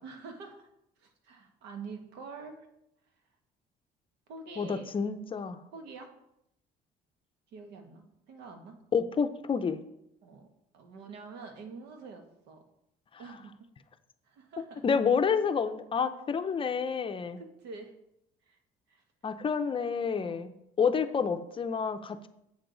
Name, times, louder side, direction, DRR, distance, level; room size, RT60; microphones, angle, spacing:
voice 1, 0.0-0.7 1.0-2.7 4.3-4.9 5.7-6.1 7.5-8.8 10.2-10.5 10.7-12.6 13.2-13.7 14.2-14.8 17.4-17.9 18.4-18.6 18.9-19.0 20.1-20.5, right 4 dB, 90° right, 4 dB, 1.4 m, -46 dB
voice 2, 4.6-5.6 8.9-9.8 14.8-17.4 19.2-20.5 20.8-22.3, left 6 dB, 30° left, 9 dB, 0.6 m, -29 dB
7.9 x 6.7 x 3.9 m, 0.82 s
cardioid pair, 110°, 17 cm